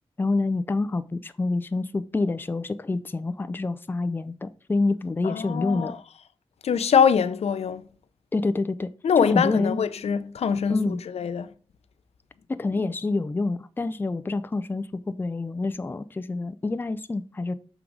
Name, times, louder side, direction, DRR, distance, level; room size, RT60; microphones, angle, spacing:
voice 1, 0.2-6.0 8.3-8.9 9.2-9.8 10.7-11.0 12.5-17.5, left 3 dB, 20° left, 0.3 m, -27 dB
voice 2, 5.2-5.9 6.6-7.8 9.0-10.8 11.1-11.5, left 7 dB, 85° left, 0.5 m, -23 dB
6.1 x 3.8 x 4.7 m
wide cardioid pair, 110°, 10 cm